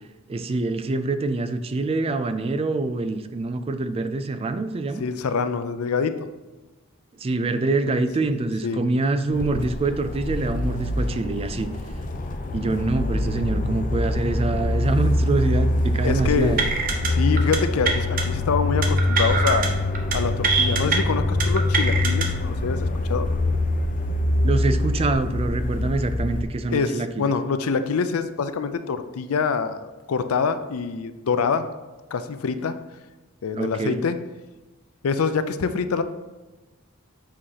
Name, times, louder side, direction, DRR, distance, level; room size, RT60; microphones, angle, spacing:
voice 1, 0.3-5.0 7.2-11.7 12.5-16.6 24.4-27.3 33.6-34.0, right 3 dB, 30° right, 10 dB, 0.3 m, -25 dB
voice 2, 5.0-6.1 7.9-8.3 8.6-8.8 16.0-16.7 17.1-19.7 20.1-23.3 26.7-31.6 32.1-32.8 33.4-34.2 35.0-36.0, left 5 dB, 85° left, 10 dB, 0.5 m, -25 dB
sound 1, 9.3-26.4, left 2 dB, 40° left, 0.5 m, -24 dB
sound 2, 16.6-17.1 17.4-17.6 17.9-18.2 18.8-19.7 19.9-20.2 20.4-21.0 21.4-22.3, right 5 dB, 45° right, 0.8 m, -23 dB
7.5 x 4.8 x 2.9 m, 1.2 s
head